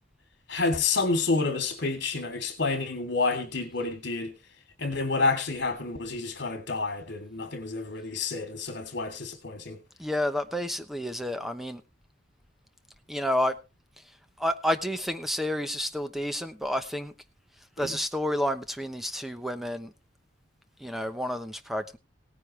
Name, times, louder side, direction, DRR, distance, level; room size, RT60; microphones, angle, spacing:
voice 1, 0.5-4.3 4.8-9.8 17.8-18.0, left 3 dB, 55° left, 3.2 m, -29 dB
voice 2, 10.0-11.8 13.1-13.6 14.4-17.1 17.8-19.9 20.8-22.0, left 1 dB, ahead, 0.9 m, -30 dB
17.5 x 9.8 x 3.3 m
head